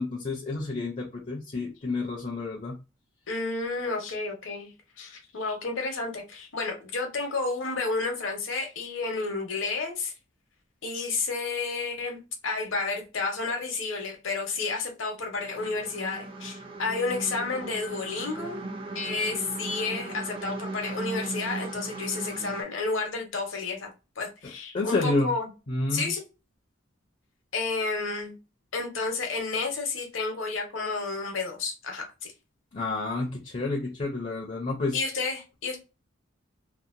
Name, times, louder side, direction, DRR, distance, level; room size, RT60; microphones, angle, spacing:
voice 1, 0.0-2.8 24.7-25.3 25.7-26.1 32.7-35.0, left 2 dB, 40° left, 0.5 m, -29 dB
voice 2, 3.3-4.7 5.0-10.1 10.8-18.6 18.9-23.9 24.2-25.5 25.9-26.2 27.5-28.3 28.7-32.3 34.9-35.8, left 3 dB, 75° left, 0.9 m, -31 dB
sound 1, 15.4-22.6, right 2 dB, 25° right, 0.4 m, -37 dB
2.8 x 2.1 x 2.4 m
head